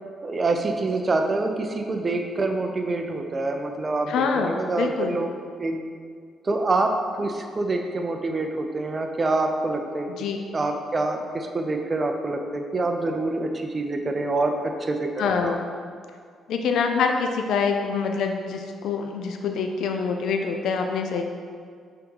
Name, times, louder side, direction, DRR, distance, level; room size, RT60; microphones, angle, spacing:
voice 1, 0.2-5.3 5.6-5.8 6.4-10.1 10.5-15.5, right 2 dB, 30° right, 4 dB, 0.6 m, -26 dB
voice 2, 4.1-5.3 10.1-10.4 15.2-15.7 16.5-21.2, left 5 dB, 80° left, 4 dB, 0.4 m, -25 dB
5.7 x 3.6 x 5.4 m, 2.1 s
cardioid pair, 115°, 0 cm